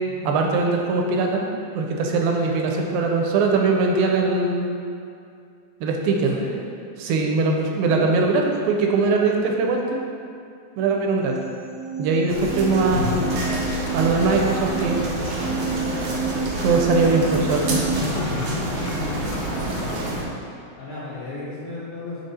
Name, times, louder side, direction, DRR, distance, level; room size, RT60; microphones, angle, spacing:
voice 1, 0.2-1.4 1.7-4.7 5.8-6.4 7.0-10.0 10.8-11.4 12.0-13.2 13.9-15.0 16.6-17.8, right 3 dB, 85° right, 1 dB, 2.4 m, -21 dB
sound 1, 11.2-18.0, right 4 dB, 40° right, 1.8 m, -30 dB
sound 2, 12.3-20.2, right 2 dB, 70° right, 2.0 m, -28 dB
sound 3, 12.9-20.0, left 3 dB, 75° left, 2.1 m, -32 dB
voice 2, 19.7-20.2 20.8-22.2, left 3 dB, 55° left, -11 dB, 1.6 m, -35 dB
6.0 x 5.2 x 4.2 m, 2.4 s
omnidirectional pair, 4.2 m